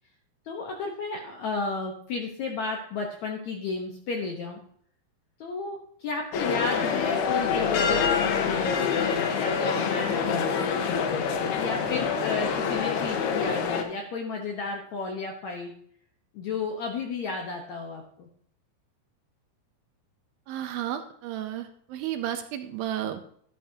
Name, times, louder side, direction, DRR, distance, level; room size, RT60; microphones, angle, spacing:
voice 1, 0.5-4.6 5.4-11.0 11.5-15.7 16.3-18.3, left 4 dB, 70° left, 2 dB, 1.8 m, -33 dB
sound 1, 6.3-13.8, left 6 dB, 85° left, 3.1 m, -26 dB
voice 2, 20.5-23.2, right 11 dB, 75° right, 8 dB, 2.3 m, -32 dB
12.0 x 11.5 x 2.8 m, 0.62 s
omnidirectional pair, 4.6 m